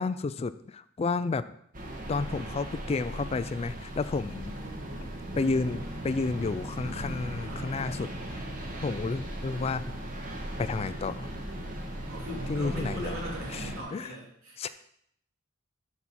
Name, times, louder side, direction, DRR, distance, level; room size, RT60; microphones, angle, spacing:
voice 1, 0.0-1.4 2.1-4.5 5.4-8.1 8.8-9.9 10.6-11.3 12.5-13.1 13.5-14.1 14.6-14.7, left 3 dB, 30° left, 14 dB, 0.3 m, -31 dB
sound 1, 1.7-13.8, right 1 dB, 40° right, 1.5 m, -38 dB
voice 2, 6.8-7.7 12.1-14.7, equal, 85° right, -4 dB, 3.4 m, -41 dB
11.5 x 6.0 x 4.2 m, 0.70 s
head